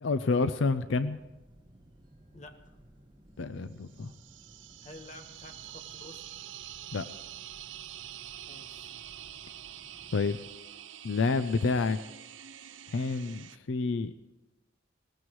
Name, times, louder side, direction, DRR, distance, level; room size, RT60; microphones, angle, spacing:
voice 1, 0.0-1.2 3.4-4.1 6.9-7.1 10.1-10.4 11.0-12.0 12.9-14.1, left 4 dB, 75° left, 11 dB, 0.5 m, -28 dB
sound 1, 0.7-10.6, right 1 dB, 25° right, 1.7 m, -58 dB
sound 2, 3.8-13.6, right 11 dB, 70° right, 0.5 m, -46 dB
voice 2, 4.8-6.5 8.5-8.9, left 1 dB, 35° left, 5 dB, 1.3 m, -50 dB
21.0 x 18.0 x 3.2 m, 1.1 s
head